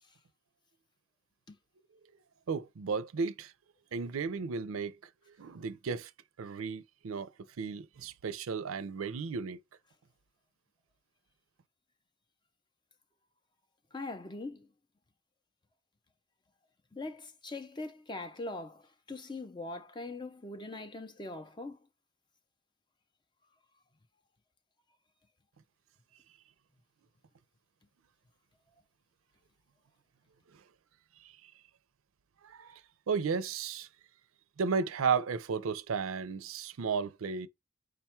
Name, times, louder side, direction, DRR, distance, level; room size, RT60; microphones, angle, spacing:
voice 1, 2.5-3.5 3.9-5.0 5.3-6.1 6.4-7.3 7.6-9.6 31.2-31.5 32.4-32.8 33.1-33.9 34.6-37.5, right 5 dB, 80° right, 0.5 m, -34 dB
voice 2, 13.9-14.7 16.9-21.8, left 2 dB, 20° left, 0.5 m, -41 dB
5.0 x 2.3 x 4.3 m
head